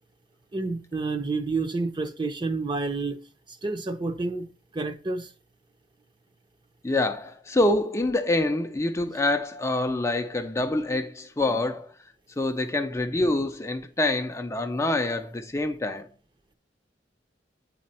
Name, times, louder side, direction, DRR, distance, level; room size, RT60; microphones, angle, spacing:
voice 1, 0.5-3.2 3.5-4.5 4.7-5.3, right 3 dB, 25° right, 0.7 m, -29 dB
voice 2, 6.8-11.9 12.4-16.1, left 2 dB, 15° left, 0.5 m, -26 dB
8.4 x 4.2 x 4.2 m
head